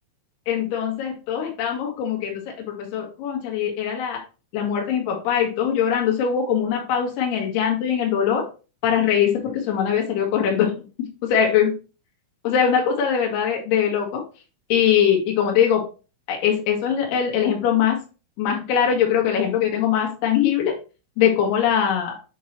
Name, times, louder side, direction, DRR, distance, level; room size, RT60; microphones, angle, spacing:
voice 1, 0.5-4.2 4.5-8.5 8.8-11.7 12.4-14.2 14.7-15.8 16.3-18.0 18.4-20.8 21.2-22.1, left 8 dB, 60° left, -1 dB, 3.2 m, -22 dB
7.8 x 5.2 x 3.0 m, 0.33 s
omnidirectional pair, 5.9 m